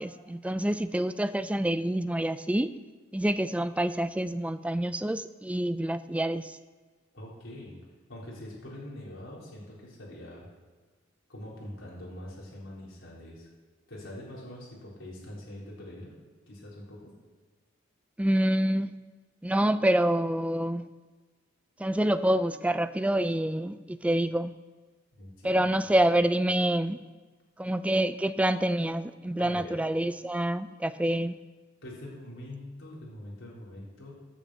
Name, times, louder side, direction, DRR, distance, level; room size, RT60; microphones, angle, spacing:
voice 1, 0.0-2.7 3.1-6.5 18.2-18.9 19.4-20.9 21.8-24.5 25.4-27.0 27.6-31.3, right 1 dB, 5° right, 12 dB, 0.3 m, -27 dB
voice 2, 7.1-7.7 8.1-10.5 11.3-13.5 13.9-16.1 16.5-17.1 25.1-25.5 29.4-29.8 31.8-34.1, left 1 dB, 80° left, -5 dB, 3.9 m, -43 dB
9.7 x 6.4 x 8.1 m, 1.4 s
head